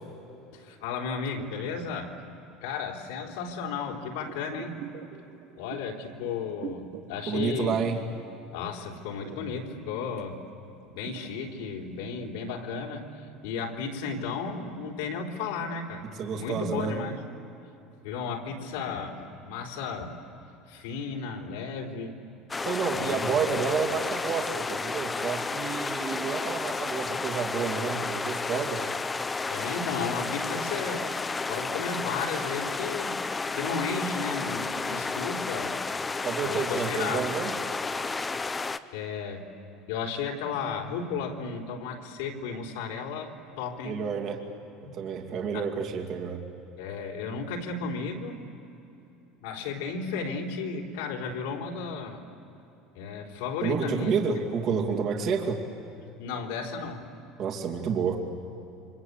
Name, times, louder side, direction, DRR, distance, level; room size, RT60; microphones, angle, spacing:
voice 1, 0.5-2.1 2.6-4.8 5.6-7.9 8.5-10.4 10.8-16.0 16.3-17.2 18.0-20.2 20.7-22.1 22.9-23.6 29.5-31.1 31.5-33.2 33.5-35.8 36.4-37.3 38.9-39.5 39.9-44.0 45.5-45.7 46.8-48.4 49.4-52.2 52.9-54.2 56.2-57.1, left 5 dB, 90° left, -1 dB, 3.9 m, -34 dB
sound 1, 4.2-8.7 8.9-12.4 12.8-12.9, right 8 dB, 70° right, 1.4 m, -45 dB
voice 2, 7.3-8.0 16.2-17.0 22.6-28.8 36.2-37.5 43.8-44.4 44.9-46.4 53.6-55.6 57.4-58.2, right 6 dB, 45° right, 2 dB, 2.7 m, -29 dB
sound 2, 22.5-38.8, left 4 dB, 15° left, 0.7 m, -32 dB
28.5 x 25.0 x 8.3 m, 3.0 s
cardioid pair, 150°, 0 cm